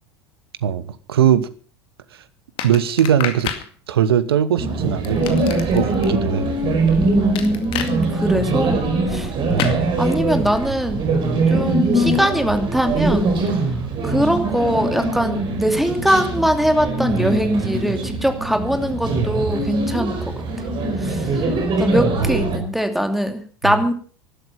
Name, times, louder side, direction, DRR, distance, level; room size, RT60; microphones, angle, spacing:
voice 1, 1.1-1.5 2.6-3.5 3.9-5.2 5.7-6.6 9.5-9.8 22.2-22.3 22.6-22.7 23.6-23.8, right 9 dB, 65° right, 15 dB, 1.3 m, -19 dB
sound 1, 2.6-3.7 5.0-6.1 7.3-7.9 9.6-9.8, left 10 dB, 40° left, 2.2 m, -28 dB
sound 2, 4.6-22.6, right 2 dB, 40° right, 4.9 m, -22 dB
voice 2, 7.0-9.3 10.0-11.0 11.5-13.4 14.0-20.2 21.0-21.3 21.8-23.9, equal, ahead, 6 dB, 2.6 m, -21 dB
19.0 x 12.5 x 5.5 m, 0.42 s
figure-of-eight pair, 75°, 14 cm